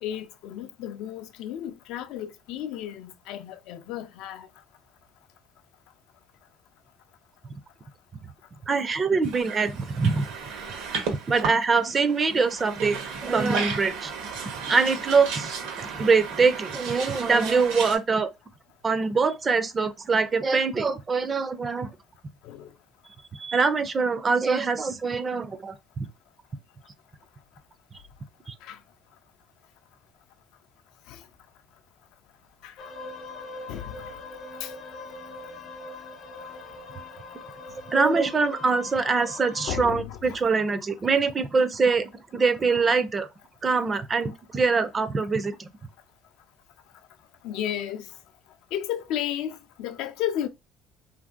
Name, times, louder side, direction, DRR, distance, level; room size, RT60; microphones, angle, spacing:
voice 1, 0.0-4.5 22.4-22.7 28.6-28.8 31.1-31.2 32.6-32.7 33.7-34.1 34.6-34.7 39.7-40.4 47.4-48.1 48.7-50.5, left 11 dB, 75° left, 0.4 m, -33 dB
voice 2, 8.7-10.3 11.3-14.1 14.7-15.5 15.8-18.3 18.8-21.9 23.3-25.7 28.5-28.6 37.9-43.3 43.6-45.7, right 4 dB, 25° right, 0.3 m, -24 dB
sound 1, 9.2-18.0, right 5 dB, 85° right, 0.8 m, -34 dB
sound 2, 32.8-39.8, left 3 dB, 45° left, 0.7 m, -41 dB
3.1 x 2.5 x 2.3 m
cardioid pair, 140°, 0 cm